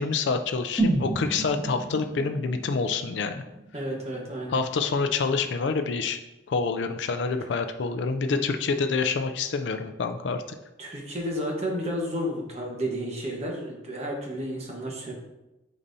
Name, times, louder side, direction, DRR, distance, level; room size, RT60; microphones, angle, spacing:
voice 1, 0.0-3.4 4.5-6.2 6.5-10.4, left 4 dB, 70° left, 7 dB, 0.4 m, -27 dB
sound 1, 0.8-4.7 5.1-5.2, right 2 dB, 15° left, 1.7 m, -31 dB
voice 2, 3.7-4.6 8.3-8.4 10.8-15.1, equal, 35° right, -1 dB, 1.2 m, -32 dB
8.5 x 4.1 x 2.7 m, 0.98 s
head